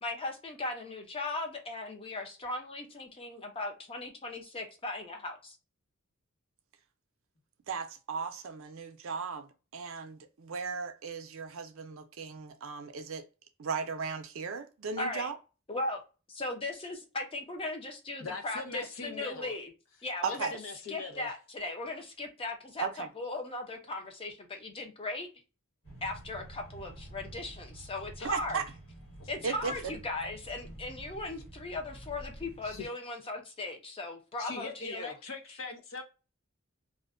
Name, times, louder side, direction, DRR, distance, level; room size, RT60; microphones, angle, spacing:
voice 1, 0.0-5.6 15.0-15.3 15.7-16.0 16.3-19.7 20.0-20.5 20.9-25.3 26.0-28.6 29.3-35.1, left 2 dB, 25° left, 0.6 m, -38 dB
voice 2, 7.7-9.5 9.7-13.2 13.6-15.4 20.2-20.5 22.8-23.1 28.2-28.6 29.4-29.9, right 5 dB, 70° right, 0.5 m, -36 dB
voice 3, 18.2-19.5 20.3-21.3 28.2-28.3 29.2-29.3 29.6-29.7 32.6-32.9 34.4-36.0, left 4 dB, 70° left, 0.6 m, -41 dB
sound 1, 25.8-32.9, right 1 dB, 90° left, 1.5 m, -49 dB
2.5 x 2.1 x 2.3 m
head